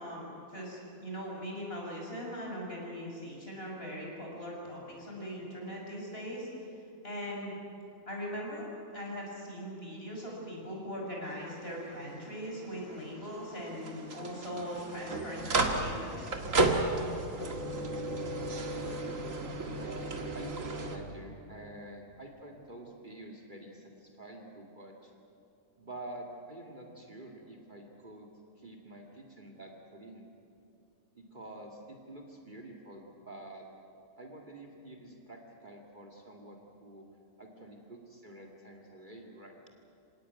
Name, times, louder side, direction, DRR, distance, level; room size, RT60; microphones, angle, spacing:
voice 1, 0.0-6.7 7.0-7.5 8.1-8.7 8.9-16.4, equal, 40° left, -2 dB, 6.3 m, -40 dB
sound 1, 11.3-21.0, right 2 dB, 65° right, 2.3 m, -34 dB
voice 2, 19.5-25.1 25.8-28.3 28.6-30.3 31.1-33.7 34.2-37.0 37.4-39.6, right 1 dB, 35° right, 2 dB, 2.4 m, -48 dB
26.5 x 17.5 x 9.5 m, 2.6 s
omnidirectional pair, 1.5 m